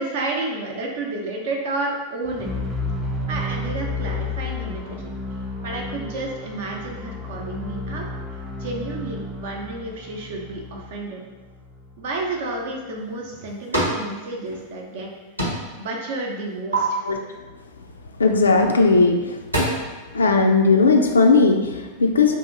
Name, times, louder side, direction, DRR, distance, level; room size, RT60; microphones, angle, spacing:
voice 1, 0.0-2.5 3.3-5.1 5.6-8.0 8.6-11.2 12.0-15.1 15.7-17.0, right 2 dB, 55° right, 0 dB, 0.6 m, -31 dB
sound 1, 2.2-12.3, left 2 dB, 15° right, 0.4 m, -32 dB
sound 2, 13.0-14.1 14.4-15.1 15.4-15.8 16.2-16.8 18.6-18.8 19.2-19.6, right 1 dB, 85° right, 1.0 m, -26 dB
voice 2, 18.2-19.4 20.1-22.3, left 3 dB, 75° left, 4 dB, 0.3 m, -17 dB
2.8 x 2.5 x 3.7 m, 1.2 s
figure-of-eight pair, 90°, 0 cm